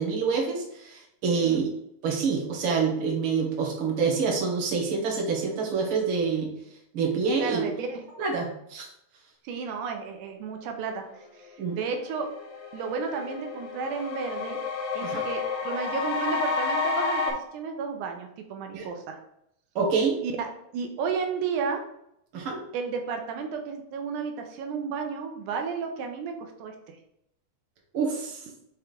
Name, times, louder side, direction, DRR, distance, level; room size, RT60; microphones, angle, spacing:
voice 1, 0.0-1.7 2.0-6.5 6.9-7.6 8.2-8.9 11.6-11.8 15.0-15.2 18.7-18.9 19.8-20.2 22.3-22.6 27.9-28.4, right 5 dB, 50° right, -1 dB, 2.0 m, -26 dB
voice 2, 7.4-8.0 9.4-11.0 11.3-12.3 12.7-14.6 14.9-19.2 20.2-20.5 20.7-21.8 22.7-27.0, right 5 dB, 85° right, 4 dB, 2.2 m, -32 dB
sound 1, 11.5-11.6 12.0-17.3, left 4 dB, 65° left, 2.5 m, -30 dB
6.0 x 3.5 x 5.1 m, 0.76 s
omnidirectional pair, 3.6 m